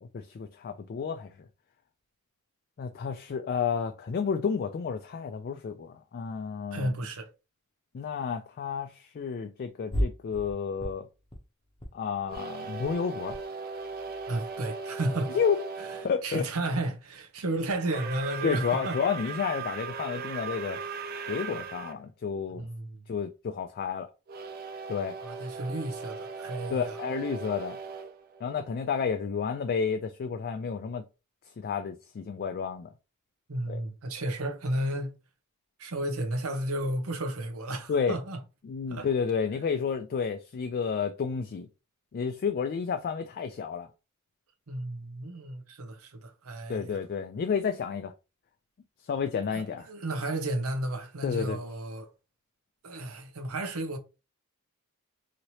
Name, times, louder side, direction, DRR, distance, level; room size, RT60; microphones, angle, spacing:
voice 1, 0.0-1.3 2.8-6.9 7.9-11.1 11.9-13.4 15.3-15.6 16.0-16.4 18.4-20.8 21.3-22.7 23.1-24.1 24.9-25.2 26.7-27.8 28.4-31.0 31.6-32.9 33.7-33.8 37.9-38.2 38.6-41.7 42.1-43.9 46.7-48.1 49.1-49.9 51.2-51.6, left 6 dB, 45° left, 0.3 m, -31 dB
voice 2, 6.7-7.3 14.3-15.4 15.9-19.0 22.5-23.0 25.2-27.0 33.5-35.2 35.8-38.4 38.9-39.1 44.7-47.0 49.5-52.1 52.8-54.0, right 1 dB, 85° right, 0.7 m, -33 dB
sound 1, 9.9-10.5 10.8-11.4 11.7-11.9 12.2-12.4 12.7-13.5 13.7-14.7, equal, 25° left, 0.7 m, -35 dB
sound 2, 12.3-16.1 17.8-22.0 24.3-29.1, right 4 dB, 45° right, 0.4 m, -38 dB
3.1 x 2.8 x 2.8 m
head